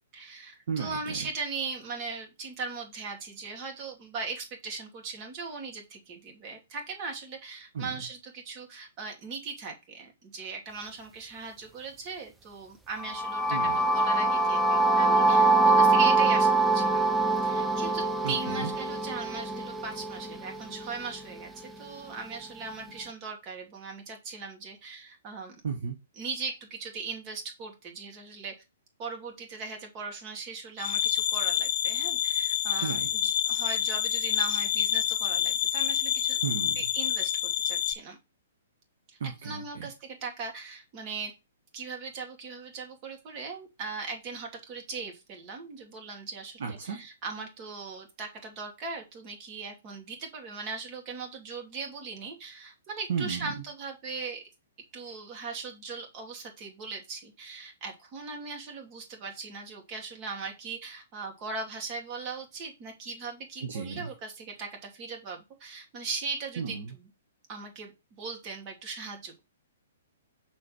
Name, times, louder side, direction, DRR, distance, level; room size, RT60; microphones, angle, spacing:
voice 1, 0.1-17.1 17.4-25.6 26.2-28.5 29.0-36.4 36.8-38.2 39.1-41.3 41.7-54.4 54.9-67.1 67.5-69.4, right 4 dB, 35° right, 2 dB, 2.6 m, -39 dB
voice 2, 0.7-1.3 7.7-8.0 13.5-13.8 18.2-18.7 25.6-26.0 32.8-33.3 36.4-36.8 39.2-39.9 46.6-47.0 53.1-53.5 63.6-64.1 66.6-66.9, right 6 dB, 60° right, 4 dB, 1.2 m, -34 dB
sound 1, 13.0-20.9, right 3 dB, 5° right, 0.8 m, -24 dB
sound 2, 30.8-37.9, left 10 dB, 40° left, 0.8 m, -28 dB
6.3 x 4.3 x 4.5 m, 0.25 s
figure-of-eight pair, 120°, 0 cm